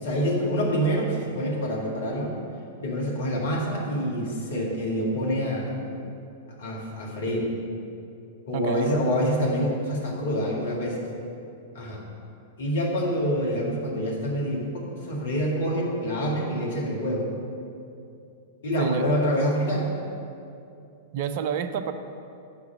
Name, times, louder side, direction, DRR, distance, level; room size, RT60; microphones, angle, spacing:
voice 1, 0.0-2.3 2.8-5.8 6.5-7.6 8.4-11.0 11.7-12.0 12.6-17.3 18.6-19.9, equal, 60° left, -2 dB, 1.8 m, -26 dB
voice 2, 8.5-8.9 18.8-19.1 21.1-21.9, right 8 dB, 50° right, 9 dB, 0.5 m, -29 dB
6.0 x 5.8 x 7.1 m, 2.6 s
figure-of-eight pair, 95°, 0 cm